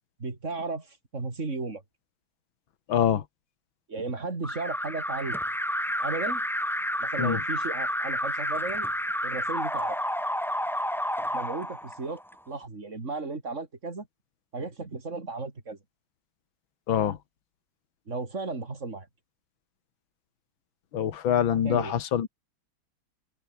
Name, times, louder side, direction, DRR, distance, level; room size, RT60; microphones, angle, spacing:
voice 1, 0.2-1.8 3.9-5.4 6.0-6.4 7.0-8.9 9.2-10.0 11.3-12.2 12.5-14.1 14.5-15.8 18.1-19.1 21.6-22.0, right 3 dB, 35° right, 3.7 m, -34 dB
voice 2, 2.9-3.2 7.2-7.4 16.9-17.2 20.9-22.3, left 9 dB, 75° left, 2.3 m, -25 dB
Alarm, 4.4-12.3, equal, 5° left, 0.4 m, -30 dB
omnidirectional pair, 2.2 m